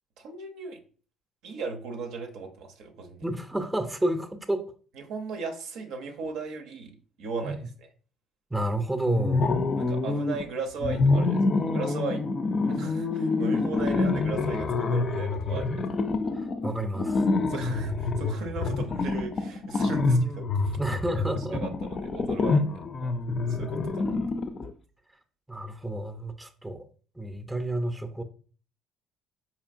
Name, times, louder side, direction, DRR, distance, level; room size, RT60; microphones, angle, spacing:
voice 1, 0.2-0.8 1.4-3.3 5.1-6.9 7.2-7.6 9.8-15.8 17.5-20.8 21.5-23.2 23.5-24.2, right 4 dB, 70° right, 0.6 m, -37 dB
voice 2, 3.2-4.7 7.4-7.6 8.5-9.6 16.3-17.2 20.8-21.6 25.5-26.8 27.2-28.2, right 1 dB, 10° right, 0.5 m, -30 dB
sound 1, 9.1-10.4 10.8-24.7, left 3 dB, 45° left, 0.4 m, -26 dB
4.2 x 2.8 x 2.5 m
hypercardioid pair, 55°, 0 cm